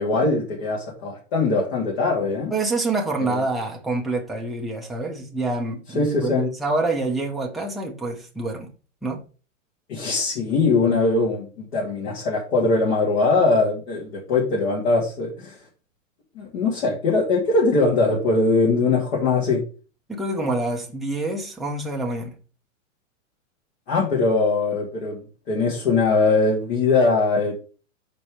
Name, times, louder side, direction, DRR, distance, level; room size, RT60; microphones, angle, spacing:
voice 1, 0.0-2.5 3.2-3.4 5.9-6.4 9.9-15.5 16.4-19.6 23.9-27.5, left 3 dB, 55° left, 2.4 m, -21 dB
voice 2, 2.5-8.7 9.0-9.2 20.1-22.3, right 2 dB, ahead, 0.5 m, -26 dB
5.4 x 4.3 x 4.8 m
hypercardioid pair, 150°, 39 cm